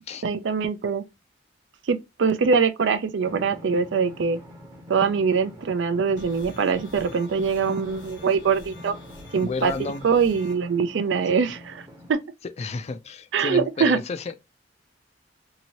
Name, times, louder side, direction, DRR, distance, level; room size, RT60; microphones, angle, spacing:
voice 1, 0.2-1.0 1.9-4.4 4.9-8.9 9.3-9.7 10.0-11.8 12.1-12.2 13.3-14.0, right 5 dB, 70° right, 0.4 m, -23 dB
Drum, 3.2-12.1, left 1 dB, 20° right, 0.8 m, -45 dB
sound 1, 6.2-10.5, left 1 dB, 90° left, 0.8 m, -46 dB
voice 2, 9.4-10.1 12.6-14.4, left 4 dB, 35° left, 0.3 m, -31 dB
2.8 x 2.7 x 2.8 m
head